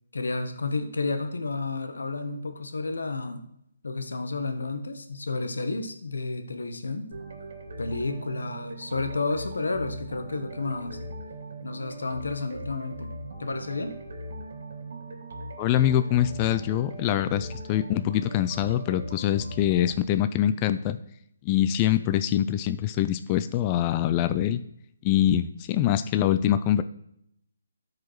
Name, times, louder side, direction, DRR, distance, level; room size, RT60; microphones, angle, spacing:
voice 1, 0.1-3.4 3.8-7.1 7.8-11.0 11.6-13.1 13.4-14.0, left 3 dB, 85° left, 6 dB, 1.1 m, -31 dB
sound 1, 7.1-19.9, right 1 dB, 60° right, 2.8 m, -39 dB
voice 2, 15.6-21.0 21.5-24.6 25.0-26.8, left 11 dB, 25° left, 11 dB, 0.3 m, -24 dB
13.5 x 4.9 x 3.2 m, 0.73 s
hypercardioid pair, 155°, 0 cm